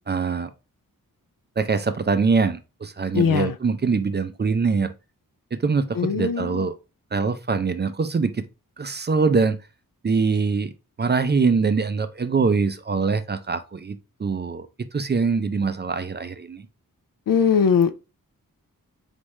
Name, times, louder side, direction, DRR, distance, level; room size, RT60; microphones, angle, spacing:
voice 1, 0.1-0.5 1.6-4.9 5.5-6.7 7.1-8.4 8.8-9.6 10.0-10.7 11.0-16.6, right 4 dB, 30° right, 0.4 m, -23 dB
voice 2, 3.1-3.5 6.0-6.6 17.3-17.9, left 7 dB, 70° left, 0.5 m, -20 dB
4.1 x 3.5 x 3.1 m
wide cardioid pair, 95°, 35 cm